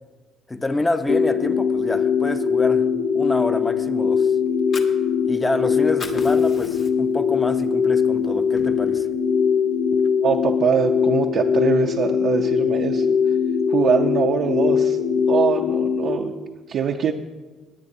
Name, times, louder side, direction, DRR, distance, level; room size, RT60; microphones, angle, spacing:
voice 1, 0.5-2.9 3.1-4.3 5.2-9.1, left 2 dB, 15° left, 9 dB, 0.7 m, -27 dB
sound 1, 1.1-16.2, left 6 dB, 75° left, 0.8 m, -21 dB
Fire, 4.5-5.6 5.9-7.2 7.6-7.8 8.2-9.1, left 4 dB, 55° left, 1.2 m, -38 dB
voice 2, 10.2-13.2 13.7-15.0 15.3-16.3 16.7-17.1, right 7 dB, 60° right, 2 dB, 0.6 m, -23 dB
18.0 x 9.7 x 2.7 m, 1.3 s
cardioid pair, 95°, 0 cm